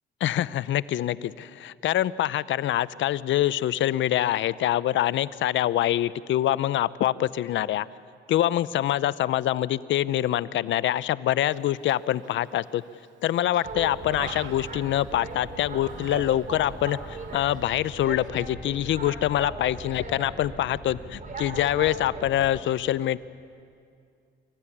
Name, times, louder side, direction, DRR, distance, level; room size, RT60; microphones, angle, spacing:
voice 1, 0.2-7.9 8.3-12.8 13.2-23.2, left 13 dB, 70° left, 18 dB, 0.6 m, -25 dB
Human voice, 12.2-12.8 13.3-15.4 15.8-16.9 17.2-17.4, right 9 dB, 70° right, 1.0 m, -44 dB
Boat Water vehicle, 13.6-22.6, right 3 dB, 40° right, 3.6 m, -39 dB
25.0 x 15.0 x 9.8 m, 2.3 s
cardioid pair, 90°, 20 cm